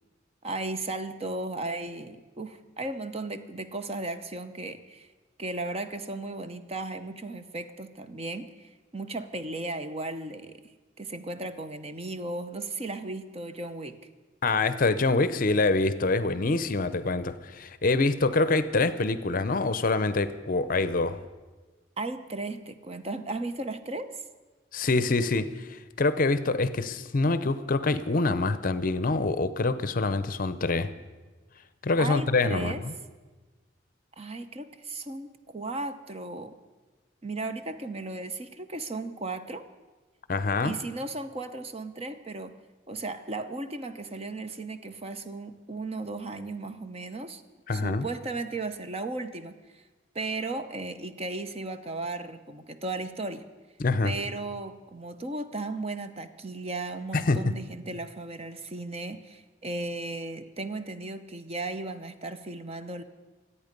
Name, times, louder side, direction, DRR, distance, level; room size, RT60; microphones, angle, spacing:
voice 1, 0.4-5.1 5.4-14.0 22.0-24.2 32.0-32.8 34.2-36.6 37.2-39.6 40.6-42.5 42.9-47.4 47.7-49.8 50.1-53.5 54.0-63.0, right 2 dB, 30° right, 9 dB, 0.7 m, -35 dB
voice 2, 14.4-21.2 24.7-30.9 31.8-32.9 40.3-40.8 47.7-48.1 53.8-54.1 57.1-57.4, left 3 dB, 45° left, 14 dB, 0.6 m, -25 dB
26.0 x 8.6 x 5.3 m, 1.3 s
head